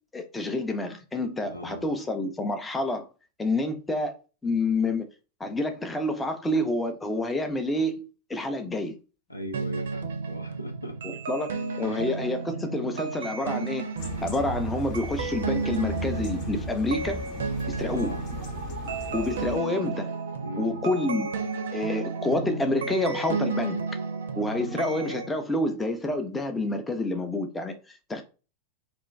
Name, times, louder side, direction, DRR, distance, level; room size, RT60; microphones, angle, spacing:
voice 1, 0.1-3.0 3.4-4.2 4.4-5.1 5.4-8.0 8.3-9.0 11.0-13.9 14.2-17.2 17.7-18.2 19.1-20.1 20.6-21.3 21.7-23.8 24.4-28.2, left 2 dB, 10° left, 0.5 m, -28 dB
voice 2, 1.5-1.9 9.3-11.2 11.8-12.0 17.9-18.2 20.4-20.8 24.5-24.6, equal, 85° left, 0.6 m, -38 dB
sound 1, 9.5-25.3, right 4 dB, 60° right, 0.4 m, -33 dB
sound 2, 14.0-19.6, left 1 dB, 45° left, 0.8 m, -37 dB
2.5 x 2.2 x 3.1 m
figure-of-eight pair, 90°, 0 cm